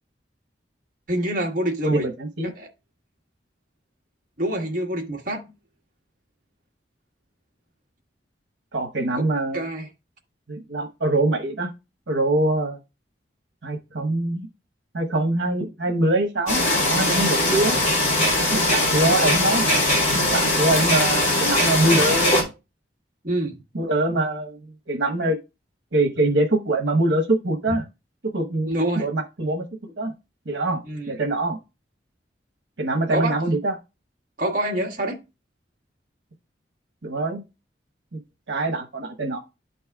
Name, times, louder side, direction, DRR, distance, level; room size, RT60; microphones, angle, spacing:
voice 1, 1.1-2.1 2.4-2.7 4.4-5.4 9.1-9.2 9.5-9.9 23.2-23.6 28.7-29.1 30.9-31.1 33.1-33.4 34.4-35.2, right 1 dB, 50° right, 1.6 m, -26 dB
voice 2, 1.8-2.5 8.7-9.6 10.5-11.7 12.1-12.8 13.6-14.5 14.9-17.8 18.5-19.7 20.1-22.5 23.7-25.4 25.9-27.8 28.3-30.1 30.5-30.8 31.1-31.6 32.8-33.8 37.0-37.4 38.1-38.2 38.5-39.4, right 2 dB, 90° right, 1.1 m, -24 dB
sound 1, 16.5-22.4, left 1 dB, 45° left, 3.0 m, -20 dB
11.5 x 4.2 x 2.3 m
head